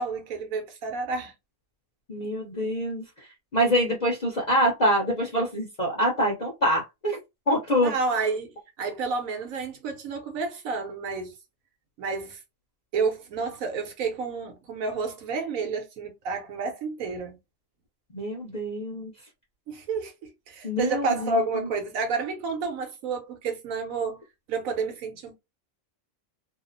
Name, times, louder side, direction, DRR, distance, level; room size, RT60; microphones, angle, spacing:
voice 1, 0.0-1.3 7.7-11.3 12.0-12.4 12.9-17.4 19.7-24.2 24.5-25.3, right 4 dB, 75° right, 1.1 m, -30 dB
voice 2, 2.1-7.2 7.5-7.9 18.1-19.1 20.6-21.7, equal, 40° left, 0.7 m, -25 dB
2.7 x 2.0 x 2.5 m
omnidirectional pair, 1.5 m